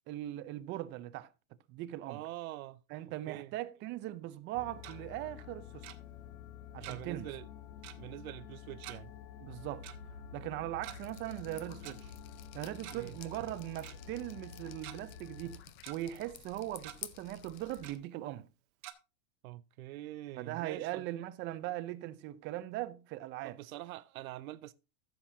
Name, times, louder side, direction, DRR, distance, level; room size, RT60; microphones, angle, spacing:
voice 1, 0.1-1.3 1.7-2.2 2.9-5.9 6.7-7.3 9.4-9.9 10.3-12.1 12.5-18.5 20.4-23.6, right 15 dB, 25° right, 0.5 m, -40 dB
voice 2, 2.1-2.8 3.3-3.5 6.8-7.5 8.0-9.1 12.9-13.2 19.4-21.0 23.4-24.7, right 16 dB, 80° right, 0.6 m, -44 dB
sound 1, 4.5-15.6, left 7 dB, 65° left, 1.2 m, -49 dB
Tick-tock, 4.5-5.0 5.8-6.0 6.8-7.2 7.4-7.5 7.8-8.0 8.8-9.0 9.8-10.0 10.7-11.0 11.8-11.9 12.7-13.1 13.4-13.5 13.8-14.0 14.5-15.0 15.4-16.0 16.4-16.5 16.8-17.0 17.8-18.0 18.8-18.9, right 14 dB, 55° right, 1.4 m, -47 dB
Drip, 10.8-18.0, left 13 dB, 30° left, 0.5 m, -52 dB
14.5 x 7.4 x 2.7 m
supercardioid pair, 145°, 42 cm